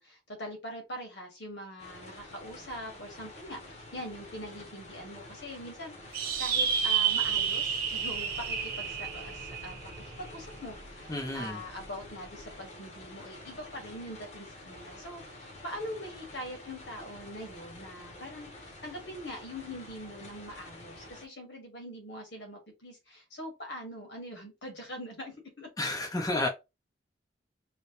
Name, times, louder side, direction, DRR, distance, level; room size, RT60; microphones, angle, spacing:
voice 1, 0.0-25.7, equal, 70° left, 1.6 m, -43 dB
sound 1, 1.8-21.3, left 1 dB, 35° left, 1.0 m, -49 dB
sound 2, 6.1-10.9, right 7 dB, 50° right, 0.9 m, -30 dB
voice 2, 11.1-11.6 25.8-26.5, left 2 dB, 20° left, 0.6 m, -31 dB
3.2 x 2.9 x 3.0 m
head